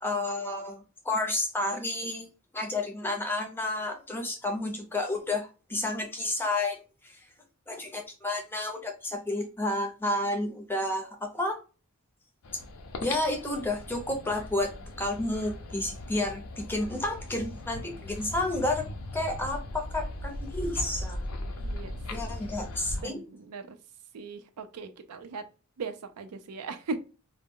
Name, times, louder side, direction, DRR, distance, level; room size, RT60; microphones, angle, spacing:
voice 1, 0.0-2.3 2.5-6.8 7.0-7.2 7.7-11.6 13.0-18.8 19.1-21.3 22.1-23.2, left 2 dB, 10° left, 2 dB, 0.5 m, -31 dB
sound 1, 12.4-23.0, left 1 dB, 80° left, 0.6 m, -38 dB
voice 2, 21.6-22.0 23.0-23.8 24.1-25.4 25.8-27.0, right 4 dB, 90° right, 9 dB, 0.4 m, -38 dB
2.2 x 2.0 x 3.5 m, 0.33 s
head